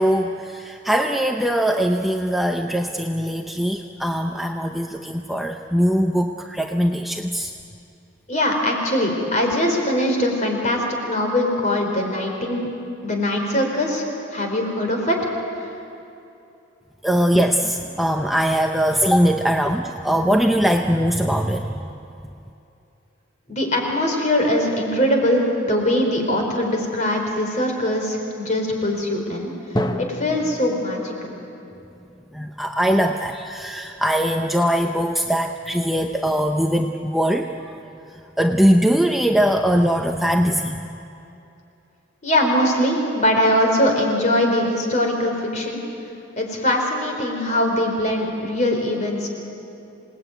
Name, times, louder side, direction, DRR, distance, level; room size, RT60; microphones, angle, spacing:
voice 1, 0.0-7.5 17.0-21.8 32.3-37.7 38.4-41.0, equal, ahead, 2 dB, 0.7 m, -21 dB
voice 2, 8.3-12.7 13.0-15.2 23.5-29.5 30.0-31.3 42.2-45.8 46.4-49.3, left 1 dB, 35° left, 2 dB, 4.3 m, -21 dB
Drum, 29.8-33.5, equal, 20° left, 1.0 m, -31 dB
27.5 x 19.0 x 9.2 m, 2.8 s
head